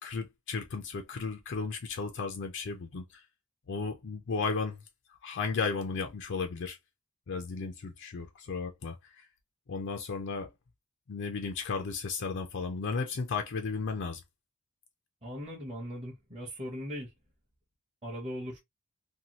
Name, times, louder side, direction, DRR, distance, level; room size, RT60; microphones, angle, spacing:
voice 1, 0.0-3.2 3.7-4.8 5.1-6.8 7.3-9.3 9.7-10.5 11.1-14.2, left 4 dB, 55° left, 0.4 m, -34 dB
voice 2, 15.2-17.1 18.0-18.6, equal, 30° right, 0.8 m, -39 dB
2.7 x 2.2 x 2.9 m
head